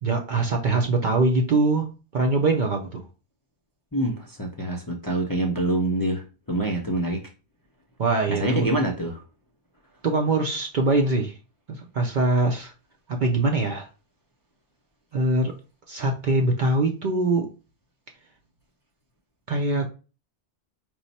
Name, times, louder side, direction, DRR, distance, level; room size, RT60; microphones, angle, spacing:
voice 1, 0.0-1.9 2.1-3.0 8.0-8.7 10.0-11.4 11.7-12.7 13.1-13.9 15.1-15.5 15.9-17.5 19.5-19.9, right 2 dB, 55° right, 3 dB, 0.6 m, -23 dB
voice 2, 3.9-7.2 8.3-9.2, right 1 dB, 25° left, -2 dB, 0.5 m, -26 dB
4.6 x 2.1 x 4.1 m, 0.33 s
omnidirectional pair, 1.1 m